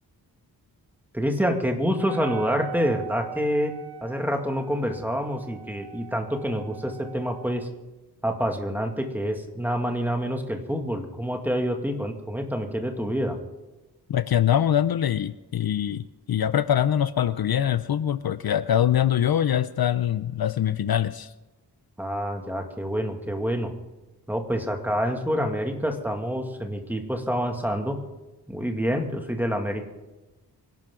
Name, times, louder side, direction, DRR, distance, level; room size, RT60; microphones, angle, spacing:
voice 1, 1.1-3.7 4.0-7.7 8.2-13.4 22.0-23.7 24.3-28.0 28.5-29.9, equal, 5° right, 3 dB, 2.2 m, -27 dB
Wind instrument woodwind instrument, 1.9-7.7, right 11 dB, 80° right, 1.0 m, -40 dB
voice 2, 14.1-21.3, left 10 dB, 65° left, 14 dB, 0.6 m, -23 dB
25.0 x 12.0 x 3.8 m, 1.1 s
wide cardioid pair, 115°, 40 cm